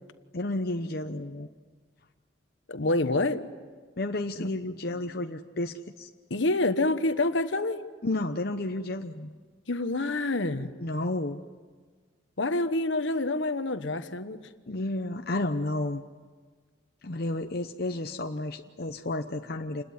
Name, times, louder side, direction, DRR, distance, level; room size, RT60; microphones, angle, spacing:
voice 1, 0.3-1.5 4.0-6.1 8.0-9.3 10.8-11.4 14.7-16.0 17.0-19.8, left 2 dB, 50° left, 5 dB, 0.9 m, -31 dB
voice 2, 2.7-3.4 4.4-4.5 6.3-7.8 9.7-10.7 12.4-14.4, left 2 dB, 75° left, 10 dB, 1.3 m, -27 dB
28.5 x 21.0 x 9.6 m, 1.5 s
head